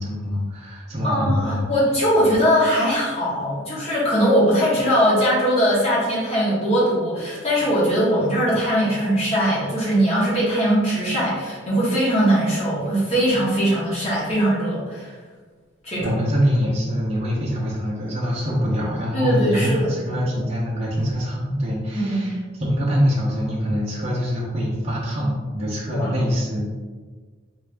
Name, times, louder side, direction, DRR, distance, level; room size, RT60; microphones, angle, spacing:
voice 1, 0.0-1.6 16.0-26.8, equal, 30° right, -6 dB, 0.6 m, -24 dB
voice 2, 1.0-15.1 15.8-16.2 19.1-19.9 21.9-22.3 25.9-26.1, equal, 30° left, -8 dB, 1.3 m, -20 dB
3.3 x 2.6 x 3.3 m, 1.4 s
head